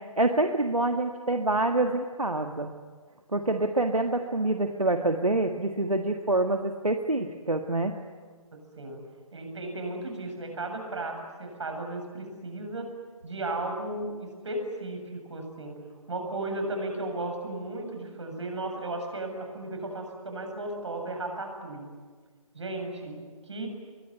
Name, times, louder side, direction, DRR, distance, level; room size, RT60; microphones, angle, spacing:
voice 1, 0.2-2.7 3.3-7.9, right 2 dB, 80° right, 5 dB, 1.8 m, -26 dB
voice 2, 9.3-12.9 13.2-15.8 16.1-21.9 22.5-23.7, right 2 dB, 55° right, 4 dB, 7.6 m, -35 dB
26.0 x 23.0 x 9.7 m, 1.5 s
figure-of-eight pair, 140°, 18 cm